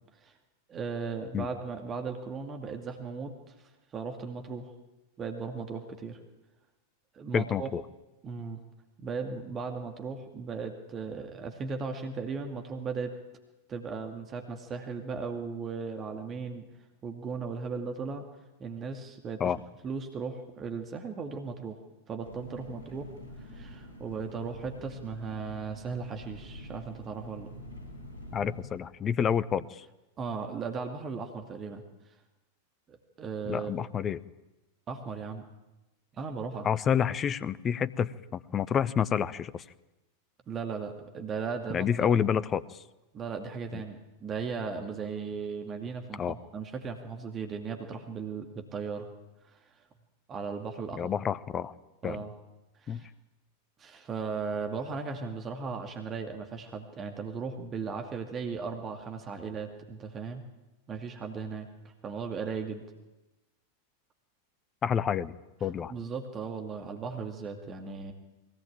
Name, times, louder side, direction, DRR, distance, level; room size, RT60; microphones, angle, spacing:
voice 1, 0.7-4.7 5.2-6.2 7.1-7.7 8.2-8.6 9.0-13.2 13.7-16.7 17.0-18.3 18.6-19.5 19.8-21.8 22.1-23.1 23.4-27.5 30.2-31.8 32.9-33.7 34.9-35.4 36.1-36.7 40.5-42.2 43.1-49.1 49.4-49.7 50.3-51.1 52.0-52.3 52.8-53.1 53.8-60.4 60.9-62.8 65.9-68.1, right 5 dB, 25° right, 5 dB, 2.3 m, -37 dB
voice 2, 7.3-7.8 19.4-19.6 28.3-29.8 33.5-34.2 36.6-39.6 41.7-42.8 43.7-43.8 46.2-46.4 51.0-51.7 52.0-52.2 52.9-53.0 64.8-65.3 65.6-65.9, left 8 dB, 25° left, 17 dB, 0.8 m, -28 dB
Engine, 22.2-28.7, left 1 dB, 80° right, 8.0 m, -46 dB
22.0 x 18.0 x 8.9 m, 1.0 s
figure-of-eight pair, 90°, 0 cm